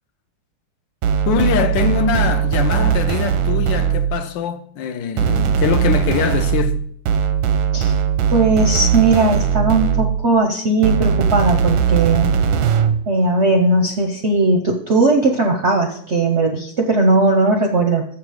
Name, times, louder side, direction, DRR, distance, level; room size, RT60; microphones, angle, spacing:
sound 1, 1.0-4.3 5.2-10.3 10.8-13.0, right 7 dB, 85° right, 1.4 m, -19 dB
voice 1, 1.3-6.8, left 7 dB, 75° left, 1.2 m, -22 dB
voice 2, 8.3-12.3 13.1-18.0, right 2 dB, 60° right, 0.7 m, -17 dB
7.2 x 6.0 x 4.8 m
omnidirectional pair, 2.2 m